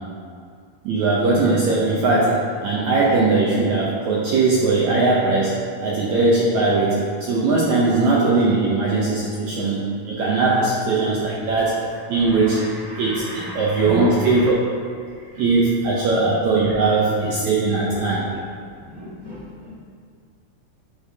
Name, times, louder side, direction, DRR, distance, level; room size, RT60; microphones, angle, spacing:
voice 1, 0.8-14.5 15.3-18.3, right 3 dB, 85° right, -5 dB, 1.6 m, -20 dB
voice 2, 17.9-18.4 18.8-19.7, left 1 dB, 80° left, -10 dB, 0.8 m, -36 dB
11.0 x 6.8 x 2.8 m, 2.2 s
omnidirectional pair, 4.4 m